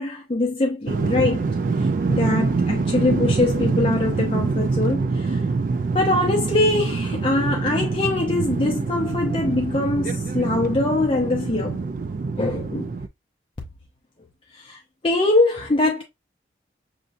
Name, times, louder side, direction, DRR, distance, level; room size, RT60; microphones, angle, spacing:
voice 1, 0.0-1.5 1.8-5.4 5.9-11.8 12.4-12.9 14.5-16.0, left 2 dB, 30° left, 0.6 m, -23 dB
sound 1, 0.9-13.1, right 4 dB, 45° right, 0.3 m, -25 dB
6.3 x 2.7 x 2.5 m
head